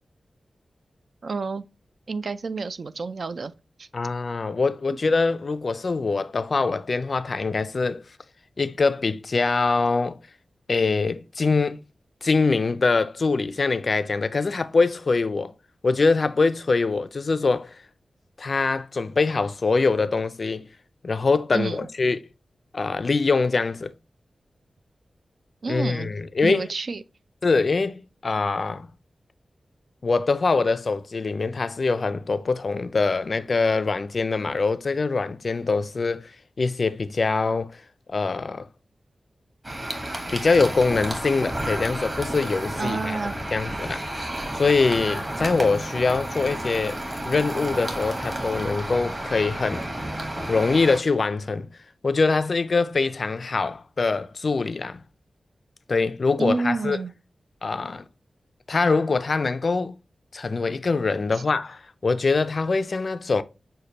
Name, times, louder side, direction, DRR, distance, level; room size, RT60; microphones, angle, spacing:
voice 1, 1.2-1.6 2.1-3.5 3.8-3.9 21.5-21.9 25.6-26.1 26.4-27.0 42.8-43.3 56.4-57.1 61.3-61.5, right 3 dB, 60° right, 0.3 m, -29 dB
voice 2, 3.9-8.0 8.6-10.2 10.7-11.8 12.2-15.5 15.8-17.8 18.4-20.7 21.0-22.2 22.7-23.9 25.7-26.7 27.4-28.9 30.0-36.3 36.6-37.8 38.1-38.7 40.3-43.2 43.5-44.0 44.5-47.0 47.2-49.9 50.5-51.7 52.0-55.0 55.9-57.0 57.6-58.1 58.7-59.9 60.3-63.4, left 4 dB, 55° left, 0.3 m, -23 dB
sound 1, 39.6-51.0, right 1 dB, 25° right, 1.1 m, -31 dB
6.4 x 2.2 x 2.8 m
wide cardioid pair, 90°, 0 cm